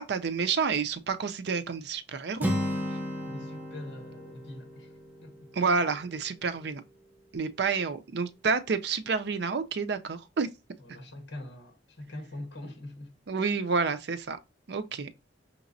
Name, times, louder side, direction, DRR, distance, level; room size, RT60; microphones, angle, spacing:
voice 1, 0.0-2.5 5.5-6.8 7.3-10.5 13.3-14.4 14.7-15.1, right 5 dB, 65° right, 0.5 m, -29 dB
Acoustic guitar, 2.4-6.3, equal, 10° right, 0.7 m, -34 dB
voice 2, 3.3-4.9 5.2-5.5 10.8-13.1, left 1 dB, 70° left, 1.3 m, -43 dB
5.8 x 2.9 x 2.6 m
head